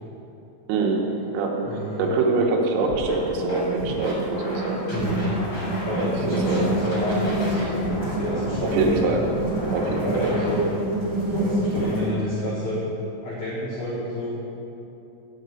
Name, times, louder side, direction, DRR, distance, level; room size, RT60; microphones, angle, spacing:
voice 1, 0.7-1.0 1.3-4.8 6.0-6.6 8.7-9.2 9.7-10.4, right 3 dB, 90° right, 1 dB, 3.6 m, -24 dB
voice 2, 1.6-2.1 4.9-5.3 5.8-9.0 9.7-10.7 11.4-12.8 13.2-14.4, left 1 dB, 90° left, -7 dB, 1.6 m, -29 dB
Scratching (performance technique), 2.8-3.1 3.5-6.0 6.3-10.5, left 1 dB, 40° left, 1.9 m, -33 dB
sound 1, 2.9-12.1, right 1 dB, 40° right, 1.6 m, -28 dB
7.8 x 6.0 x 7.9 m, 3.0 s
omnidirectional pair, 5.5 m